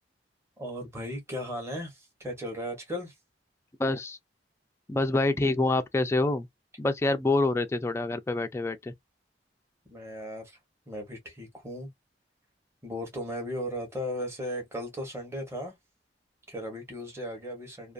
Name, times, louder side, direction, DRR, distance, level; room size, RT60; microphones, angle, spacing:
voice 1, 0.6-3.1 9.9-10.6 10.9-11.9 12.8-15.7 16.5-17.9, equal, 15° right, 0.9 m, -36 dB
voice 2, 3.8-4.2 4.9-6.5 6.8-8.9, left 2 dB, 15° left, 0.3 m, -26 dB
2.5 x 2.2 x 2.3 m
head